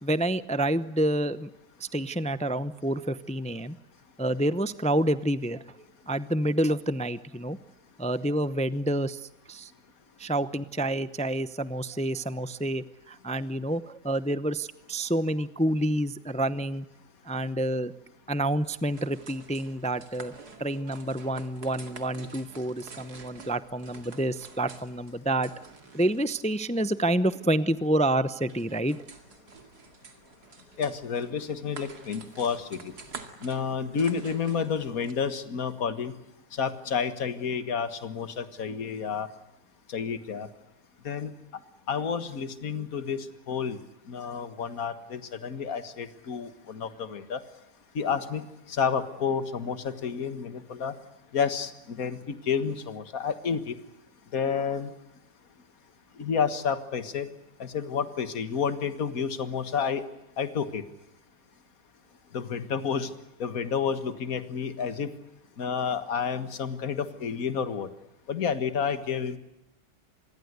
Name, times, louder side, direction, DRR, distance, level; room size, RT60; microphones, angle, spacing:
voice 1, 0.0-1.5 1.8-3.8 4.2-5.6 6.1-7.6 8.0-9.7 10.2-16.9 17.2-17.9 18.3-20.3 20.6-25.5 25.9-29.0, right 1 dB, 10° left, 14 dB, 0.3 m, -28 dB
sound 1, 18.6-35.1, right 4 dB, 80° right, 2.9 m, -49 dB
voice 2, 30.8-32.9 33.4-36.1 36.5-39.3 39.9-40.5 41.0-41.3 41.9-43.8 44.1-47.4 48.0-50.9 51.3-53.7 54.3-54.9 56.2-57.3 57.6-60.0 60.4-60.8 62.3-63.1 63.4-65.1 65.6-67.9 68.3-69.4, left 6 dB, 60° left, 11 dB, 2.0 m, -30 dB
26.5 x 21.5 x 8.1 m, 0.89 s
omnidirectional pair, 1.7 m